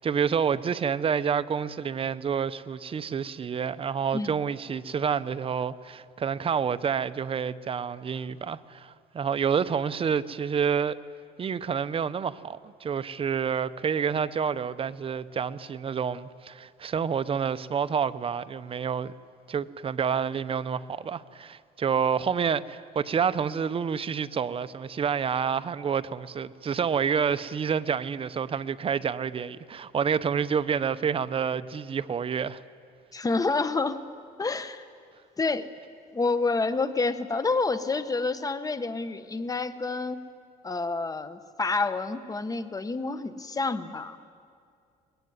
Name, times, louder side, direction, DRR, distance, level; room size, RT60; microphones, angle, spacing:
voice 1, 0.0-11.0 11.4-19.1 19.5-32.6, right 7 dB, 35° right, 0.7 m, -28 dB
voice 2, 33.1-34.0 34.4-34.8 35.4-35.7 36.1-40.2 40.6-44.2, left 3 dB, 20° left, 1.2 m, -28 dB
23.0 x 20.5 x 9.6 m
cardioid pair, 110°, 17 cm